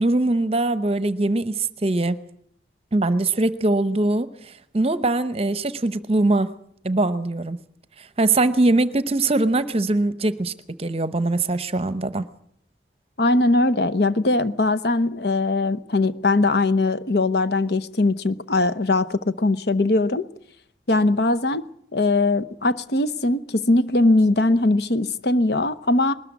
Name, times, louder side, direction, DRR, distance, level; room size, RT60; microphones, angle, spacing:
voice 1, 0.0-2.2 2.9-6.5 6.8-7.6 8.0-10.5 10.8-12.2, right 2 dB, 30° right, 0.8 m, -22 dB
voice 2, 13.2-20.2 20.9-21.6 21.9-26.1, left 2 dB, 60° left, 0.9 m, -20 dB
20.5 x 13.5 x 9.5 m
head